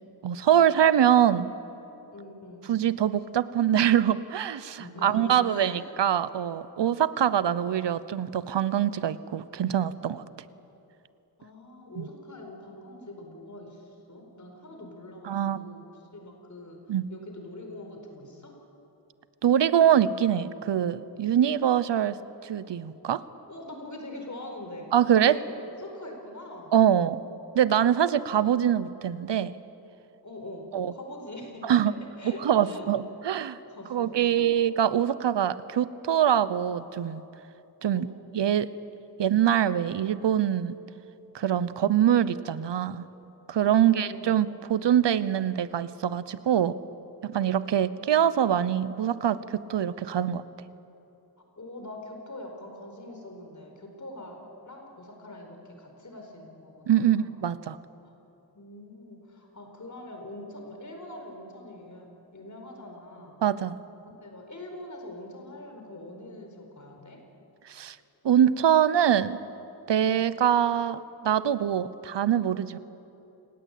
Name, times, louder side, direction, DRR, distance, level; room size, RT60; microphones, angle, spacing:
voice 1, 0.2-1.5 2.7-10.2 12.0-12.1 15.3-15.6 16.9-17.1 19.4-22.2 22.4-23.2 24.9-25.4 26.7-27.2 27.5-29.5 30.7-30.9 31.7-31.9 32.4-33.6 33.9-37.2 37.8-38.1 38.3-38.7 39.2-40.7 41.3-43.1 43.5-46.7 47.2-50.4 56.9-57.8 63.4-63.8 67.7-68.0 68.2-69.4 69.9-72.8, right 10 dB, 85° right, 16 dB, 0.9 m, -24 dB
voice 2, 2.1-2.6 4.8-5.8 11.4-15.9 16.1-16.8 17.1-18.5 23.5-26.8 30.2-32.9 33.5-34.5 37.9-38.2 41.4-41.9 43.6-44.4 51.6-54.4 54.6-57.5 58.0-58.1 58.5-63.4 64.2-67.2 70.0-70.2, left 1 dB, 45° left, 3 dB, 4.7 m, -43 dB
28.0 x 19.5 x 8.5 m, 2.9 s
wide cardioid pair, 90°, 41 cm